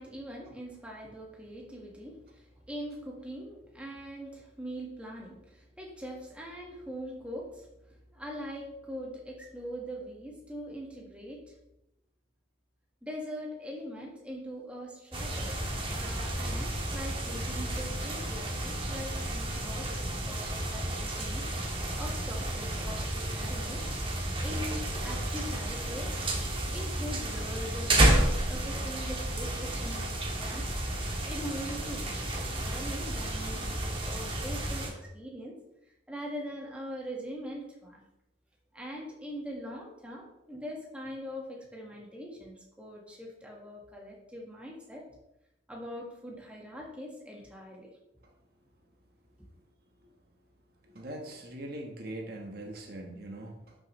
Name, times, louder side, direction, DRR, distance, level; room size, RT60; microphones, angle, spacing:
voice 1, 0.0-11.5 13.0-21.5 22.0-23.8 24.4-26.2 26.7-30.1 30.4-30.7 31.2-35.6 36.1-38.0 38.7-45.1 45.7-47.9, equal, 5° right, -2 dB, 1.6 m, -42 dB
sound 1, 15.1-34.9, right 1 dB, 25° right, 1.5 m, -31 dB
voice 2, 50.8-53.8, right 1 dB, 50° right, 1 dB, 1.3 m, -42 dB
12.0 x 6.4 x 3.2 m, 0.86 s
head